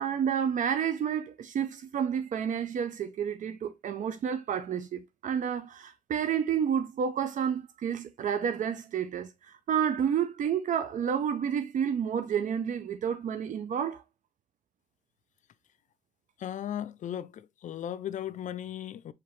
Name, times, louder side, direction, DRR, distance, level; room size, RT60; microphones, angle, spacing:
voice 1, 0.0-14.0, right 8 dB, 70° right, 0.5 m, -30 dB
voice 2, 16.4-19.1, left 10 dB, 65° left, 0.4 m, -36 dB
4.7 x 3.3 x 3.1 m
wide cardioid pair, 110°, 13 cm